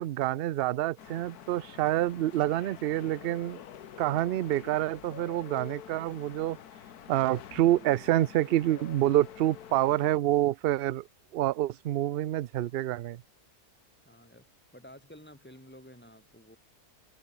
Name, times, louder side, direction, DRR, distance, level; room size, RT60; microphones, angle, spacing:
voice 1, 0.0-3.6 4.0-6.6 7.1-11.1 11.3-13.2, right 14 dB, 75° right, 0.5 m, -27 dB
sound 1, 1.0-10.2, left 9 dB, 90° left, 1.6 m, -47 dB
voice 2, 14.1-14.5 14.7-16.6, equal, 5° left, 6.9 m, -51 dB
open air
omnidirectional pair, 1.6 m